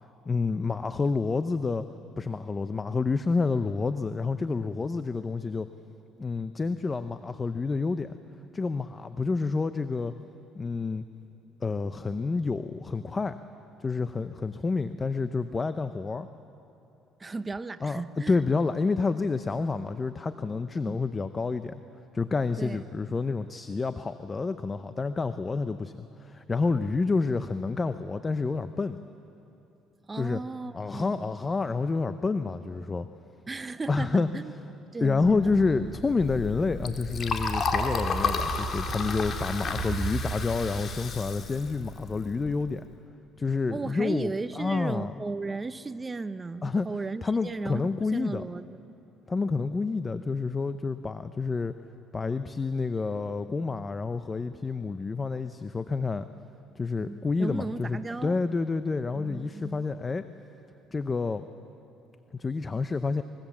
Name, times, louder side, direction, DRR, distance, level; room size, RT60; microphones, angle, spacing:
voice 1, 0.3-1.8 2.2-5.7 6.2-8.2 8.5-10.1 10.5-11.1 11.6-13.4 13.8-16.3 17.8-21.8 22.1-29.0 30.2-30.4 30.7-33.1 33.9-34.3 35.0-42.8 43.4-45.1 46.6-46.9 47.2-48.4 49.3-51.7 52.1-56.3 56.8-60.2 60.9-61.5 62.3-63.2, left 4 dB, 25° left, 0.7 m, -29 dB
voice 2, 17.2-18.4 20.7-21.0 22.6-22.8 30.1-31.3 33.5-34.5 34.9-35.6 43.7-48.8 57.0-58.4 59.1-59.9, right 3 dB, 20° right, 0.7 m, -35 dB
sound 1, 35.2-41.4, right 4 dB, 50° right, 3.5 m, -37 dB
Liquid, 36.0-42.7, left 5 dB, 45° left, 2.3 m, -32 dB
25.0 x 21.5 x 7.3 m
cardioid pair, 105°, 0 cm